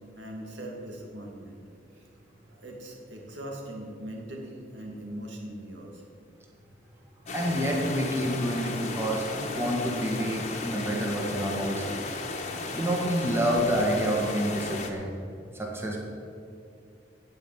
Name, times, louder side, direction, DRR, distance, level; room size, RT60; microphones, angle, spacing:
voice 1, 0.1-1.6 2.0-2.1 2.5-6.0 13.2-13.5, right 1 dB, 80° right, 0 dB, 2.4 m, -40 dB
sound 1, 7.3-14.9, left 3 dB, 40° left, 1.4 m, -35 dB
voice 2, 7.3-12.0 12.8-15.1 15.5-16.0, equal, 15° right, -1 dB, 1.8 m, -28 dB
16.5 x 5.6 x 9.2 m, 2.5 s
head